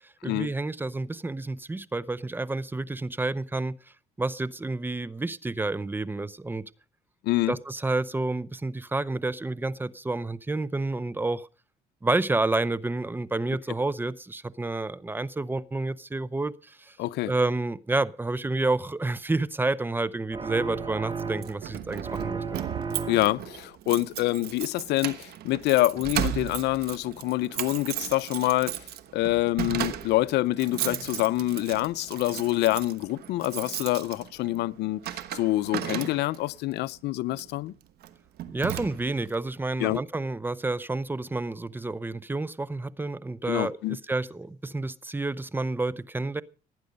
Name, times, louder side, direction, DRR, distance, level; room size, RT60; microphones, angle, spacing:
voice 1, 0.0-3.8 4.2-6.7 7.5-11.5 12.0-17.0 17.3-22.6 38.5-46.4, right 2 dB, 10° right, 0.6 m, -29 dB
voice 2, 7.2-7.5 17.0-17.3 23.1-28.8 29.1-37.7 39.8-40.0 43.5-44.0, left 17 dB, 80° left, 0.7 m, -26 dB
sound 1, 20.3-21.7 22.0-23.5, right 5 dB, 30° right, 1.4 m, -34 dB
Keys jangling, 21.2-36.5 37.3-37.6 38.0-38.1 38.4-39.3, right 12 dB, 70° right, 1.2 m, -35 dB
18.5 x 9.6 x 5.2 m
cardioid pair, 110°, 17 cm